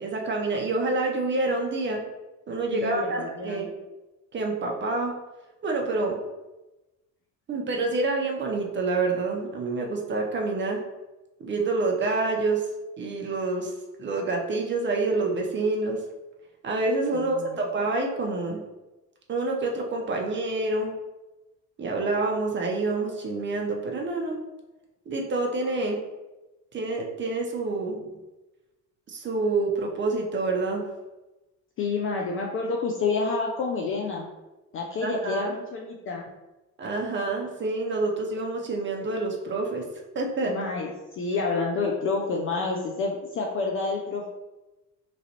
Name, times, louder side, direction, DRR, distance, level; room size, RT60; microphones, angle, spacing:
voice 1, 0.0-2.0 2.5-3.7 4.3-5.2 5.6-6.2 7.5-10.8 11.4-12.7 13.0-13.7 14.0-16.0 16.6-18.6 19.3-20.9 21.8-24.4 25.1-26.0 26.7-28.1 29.1-30.8 35.0-35.5 36.8-39.9 40.1-40.6, right 3 dB, 25° right, 0 dB, 0.6 m, -27 dB
voice 2, 2.7-3.7 17.4-17.6 31.8-34.3 34.7-36.3 40.5-44.3, left 4 dB, 30° left, 0 dB, 0.3 m, -29 dB
3.0 x 2.4 x 2.8 m, 1.1 s
figure-of-eight pair, 55°, 46 cm